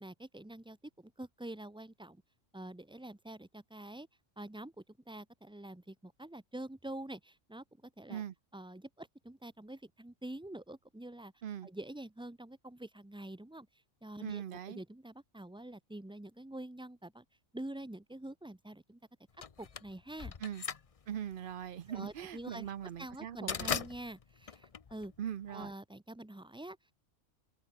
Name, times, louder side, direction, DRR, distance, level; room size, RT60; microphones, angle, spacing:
voice 1, 0.0-2.2 2.5-4.1 4.4-8.2 8.5-11.3 11.6-13.7 14.0-17.2 17.5-19.0 19.6-20.3 21.9-22.7 23.0-25.1 25.5-26.8, right 1 dB, 5° right, 0.4 m, -46 dB
voice 2, 14.2-14.8 20.4-20.6 21.1-23.7 25.2-25.7, right 10 dB, 55° right, 0.7 m, -41 dB
sound 1, 19.4-25.6, left 6 dB, 35° left, 0.7 m, -40 dB
omnidirectional pair, 1.3 m